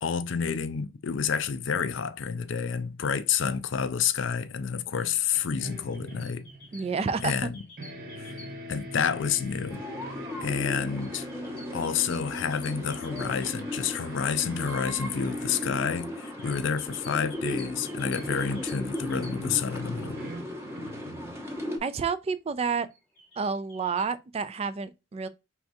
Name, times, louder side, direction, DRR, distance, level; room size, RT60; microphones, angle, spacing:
voice 1, 0.0-6.5 7.2-7.6 8.2-8.4 8.7-9.8 10.4-11.3 11.7-20.2, left 7 dB, 65° left, 0.4 m, -29 dB
sound 1, 5.3-7.5 7.8-21.7, equal, 50° right, 1.2 m, -42 dB
sound 2, 5.7-8.9 11.0-14.1 15.9-19.7 22.9-24.0, left 2 dB, 5° left, 1.3 m, -51 dB
voice 2, 6.7-7.5 21.8-22.9 23.4-25.3, right 5 dB, 30° right, 0.3 m, -29 dB
sound 3, 9.7-21.8, left 1 dB, 15° right, 0.9 m, -37 dB
4.6 x 3.4 x 2.7 m
head